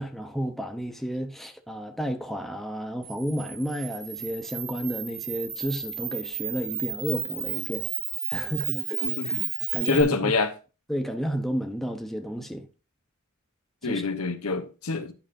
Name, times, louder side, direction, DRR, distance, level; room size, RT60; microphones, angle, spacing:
voice 1, 0.0-7.9 8.3-10.3 10.9-12.7 13.8-14.1, equal, ahead, 0.7 m, -32 dB
Camera, 3.0-10.0, right 8 dB, 50° right, 1.6 m, -33 dB
voice 2, 9.0-9.4 9.8-10.5 13.8-15.1, left 4 dB, 85° left, 1.1 m, -26 dB
11.5 x 5.6 x 2.6 m
head